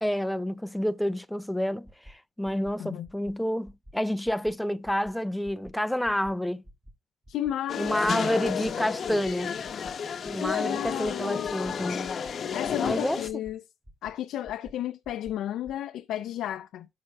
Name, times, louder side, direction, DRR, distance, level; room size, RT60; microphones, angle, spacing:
voice 1, 0.0-6.6 7.8-9.5 10.3-12.1 12.8-13.2, equal, 5° left, 0.4 m, -29 dB
sound 1, 1.8-2.1 2.4-2.7 3.0-3.3 3.6-3.9 4.2-4.5 4.8-5.1 5.4-5.7 6.0-6.3 6.6-6.9 7.2-7.5 7.8-8.1 8.4-8.7 9.0-9.3 9.6-9.9 10.2-10.5 10.8-11.1 11.4-11.7 12.0-12.3 12.6-12.9 13.2-13.5 13.8-14.1 14.4-14.7 15.0-15.3 15.6-15.7, equal, 20° right, 2.2 m, -49 dB
voice 2, 7.3-8.9 10.3-11.5 12.5-13.6 14.0-16.9, left 12 dB, 80° left, 0.5 m, -33 dB
sound 2, 7.7-13.3, left 7 dB, 55° left, 0.8 m, -32 dB
16.5 x 5.7 x 2.3 m
cardioid pair, 90°, 0 cm